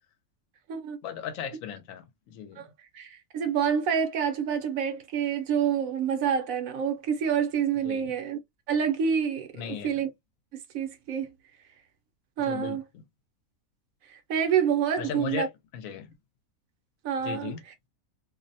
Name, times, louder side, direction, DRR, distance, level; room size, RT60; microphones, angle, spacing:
voice 1, 1.0-2.7 7.8-8.1 9.6-9.9 12.4-12.8 15.0-16.1 17.2-17.6, left 8 dB, 70° left, 0.9 m, -37 dB
voice 2, 2.9-8.4 8.7-10.1 10.7-11.3 12.4-12.8 14.1-15.5 17.0-17.5, right 7 dB, 75° right, 1.0 m, -27 dB
2.5 x 2.1 x 2.6 m
omnidirectional pair, 1.5 m